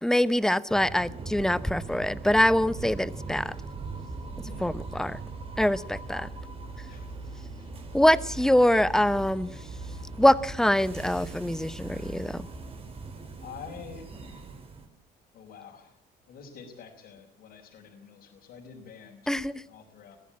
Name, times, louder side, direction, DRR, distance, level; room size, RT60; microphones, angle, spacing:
voice 1, 0.0-3.5 4.6-5.2 5.6-6.3 7.9-9.5 10.2-12.5 19.3-19.6, left 1 dB, 5° left, 15 dB, 0.9 m, -24 dB
sound 1, 0.7-14.9, right 3 dB, 35° right, 4.2 m, -40 dB
voice 2, 4.4-4.8 6.9-7.1 7.6-7.7 13.4-14.1 15.3-15.9 16.3-19.3 19.7-20.2, left 6 dB, 70° left, -2 dB, 4.6 m, -47 dB
21.5 x 15.0 x 8.6 m, 0.70 s
cardioid pair, 110°, 17 cm